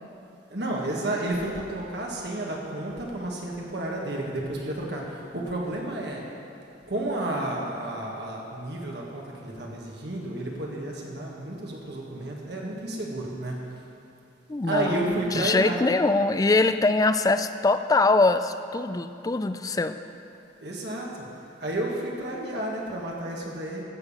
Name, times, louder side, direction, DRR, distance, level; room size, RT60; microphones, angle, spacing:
voice 1, 0.5-6.2 6.9-13.6 14.7-15.8 20.6-21.3 21.6-23.8, right 1 dB, 60° right, -2 dB, 1.6 m, -31 dB
voice 2, 14.5-20.0, left 3 dB, 20° left, 10 dB, 0.3 m, -23 dB
14.5 x 7.0 x 5.6 m, 2.8 s
head